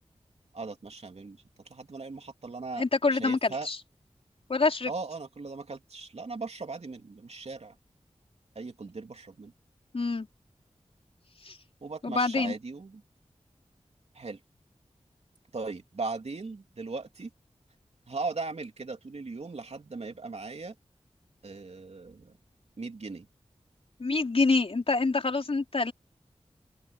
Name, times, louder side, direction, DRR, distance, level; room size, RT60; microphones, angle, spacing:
voice 1, 0.5-1.4 1.7-2.8 3.1-3.7 4.9-7.7 8.5-9.5 11.8-13.0 14.1-14.4 15.5-17.3 18.1-20.7 21.4-22.3 22.8-23.3, right 3 dB, 65° right, 3.1 m, -38 dB
voice 2, 2.8-3.8 4.5-4.9 9.9-10.3 11.4-11.6 12.0-12.5 24.0-25.9, left 3 dB, 55° left, 4.3 m, -26 dB
open air
wide cardioid pair, 85°, 11 cm